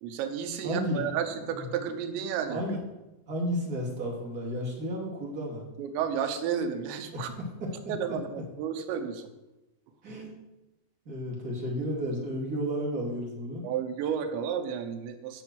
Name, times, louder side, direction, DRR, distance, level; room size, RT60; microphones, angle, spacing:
voice 1, 0.0-2.6 5.8-7.3 7.9-9.3 13.6-15.4, right 8 dB, 85° right, 7 dB, 3.2 m, -32 dB
voice 2, 0.6-1.6 2.5-2.8 3.3-5.7 7.1-7.2 7.6-7.7 8.1-8.2 10.0-10.3 11.0-13.6, equal, 25° right, -3 dB, 2.2 m, -32 dB
10.5 x 5.9 x 8.0 m, 1.0 s
omnidirectional pair, 5.1 m